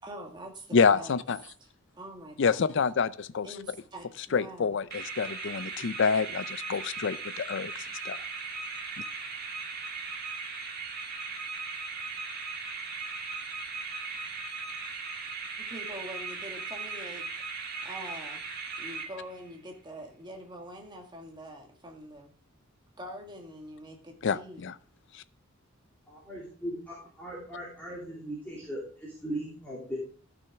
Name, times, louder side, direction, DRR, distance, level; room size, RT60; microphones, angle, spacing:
voice 1, 0.0-1.1 1.6-1.7 1.9-2.6 3.4-4.7 15.6-17.2 17.8-18.4 18.8-22.3 23.0-24.6, equal, 20° right, 2 dB, 1.7 m, -44 dB
voice 2, 0.7-1.4 2.4-3.5 4.3-7.7 8.0-8.2 24.2-24.7 25.1-25.2, left 5 dB, 60° left, 16 dB, 0.4 m, -27 dB
sound 1, 4.9-19.6, right 4 dB, 45° right, 1.7 m, -38 dB
voice 3, 26.1-30.0, right 1 dB, 10° left, -7 dB, 2.7 m, -38 dB
13.0 x 6.3 x 3.5 m, 0.43 s
head